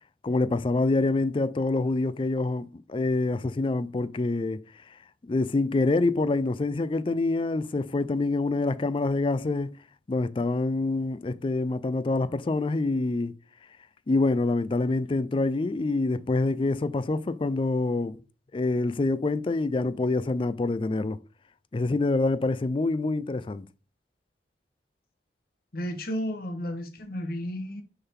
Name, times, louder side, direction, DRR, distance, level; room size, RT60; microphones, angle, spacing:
voice 1, 0.2-4.6 5.2-9.8 10.1-13.3 14.1-18.2 18.5-21.2 21.7-23.7, left 2 dB, 30° left, 0.4 m, -26 dB
voice 2, 25.7-27.8, equal, 55° left, 1.2 m, -32 dB
6.6 x 3.9 x 4.4 m
head